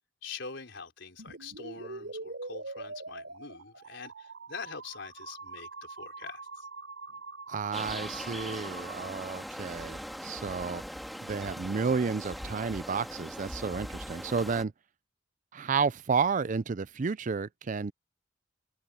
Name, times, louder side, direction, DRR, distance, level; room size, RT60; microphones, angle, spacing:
voice 1, 0.2-6.7, left 5 dB, 65° left, 5.0 m, -44 dB
sound 1, 1.2-9.1, right 3 dB, 70° right, 4.2 m, -43 dB
voice 2, 7.5-10.8 11.2-14.7 15.5-17.9, right 5 dB, 40° right, 0.5 m, -31 dB
sound 2, 7.7-14.6, equal, ahead, 1.8 m, -41 dB
open air
head